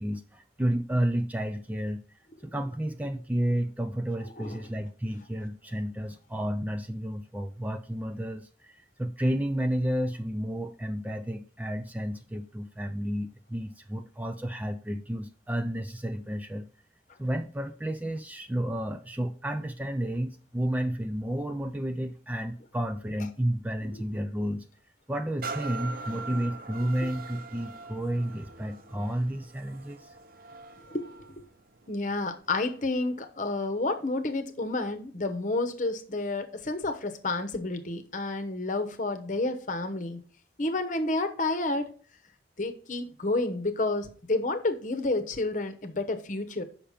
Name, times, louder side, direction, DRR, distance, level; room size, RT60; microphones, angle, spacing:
voice 1, 0.0-2.0 2.4-16.7 17.2-24.7 25.1-30.2, right 1 dB, 10° right, 0.4 m, -31 dB
sound 1, 25.4-33.0 33.6-33.7, right 4 dB, 50° right, 0.6 m, -43 dB
voice 2, 30.9-31.3 31.9-40.2 40.6-41.9 42.6-46.6, left 2 dB, 45° left, 0.9 m, -30 dB
7.0 x 5.7 x 5.0 m
head